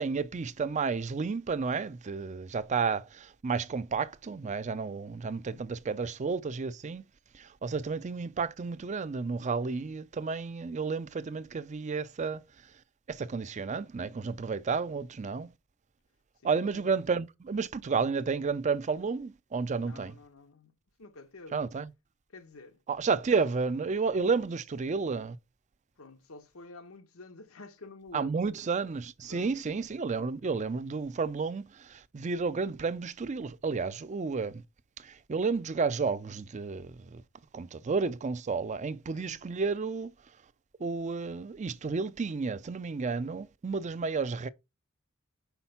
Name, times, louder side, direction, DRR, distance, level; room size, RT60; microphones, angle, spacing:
voice 1, 0.0-7.0 7.3-12.4 13.1-15.5 16.4-20.1 21.5-21.9 22.9-25.4 28.1-34.6 35.0-37.2 37.5-40.1 40.8-44.5, right 4 dB, 35° right, 0.4 m, -31 dB
voice 2, 16.4-16.9 19.8-20.7 21.0-21.6 22.3-22.8 24.4-24.5 26.0-28.6 29.3-29.8 39.1-39.4, left 3 dB, 80° left, 1.0 m, -49 dB
5.8 x 4.3 x 5.6 m
head